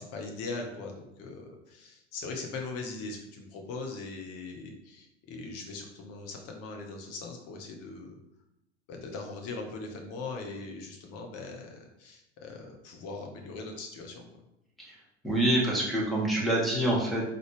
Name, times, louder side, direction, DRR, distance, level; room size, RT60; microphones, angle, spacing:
voice 1, 0.0-8.2 8.9-14.3, left 3 dB, 40° left, 2 dB, 1.0 m, -40 dB
voice 2, 15.2-17.3, right 1 dB, ahead, -6 dB, 1.3 m, -26 dB
3.9 x 3.4 x 3.2 m, 0.88 s
figure-of-eight pair, 90°, 36 cm